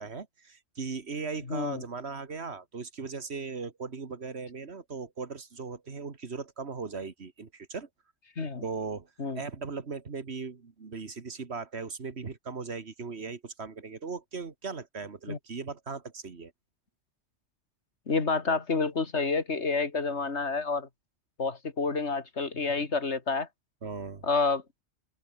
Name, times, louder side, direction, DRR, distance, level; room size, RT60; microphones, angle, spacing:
voice 1, 0.0-7.9 8.6-9.1 9.4-16.5 23.8-24.3, right 4 dB, 65° right, 2.1 m, -38 dB
voice 2, 1.5-1.8 8.4-8.6 9.2-9.4 15.3-15.4 18.1-20.9 21.4-23.5 24.2-24.6, left 4 dB, 70° left, 2.7 m, -29 dB
open air
omnidirectional pair, 1.2 m